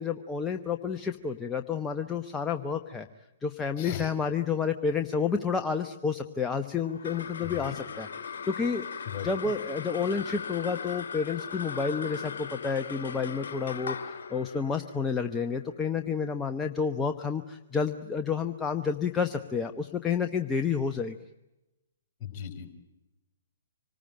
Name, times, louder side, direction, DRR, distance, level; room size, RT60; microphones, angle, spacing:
voice 1, 0.0-3.1 3.4-8.1 8.5-21.2, left 5 dB, 10° left, 6 dB, 1.0 m, -30 dB
voice 2, 3.8-4.1 7.4-7.7 9.1-9.5 22.2-22.8, left 9 dB, 30° left, 6 dB, 4.5 m, -38 dB
sound 1, 6.8-17.4, left 6 dB, 60° left, 1.7 m, -39 dB
26.0 x 20.0 x 8.9 m, 0.99 s
figure-of-eight pair, 120°, 0 cm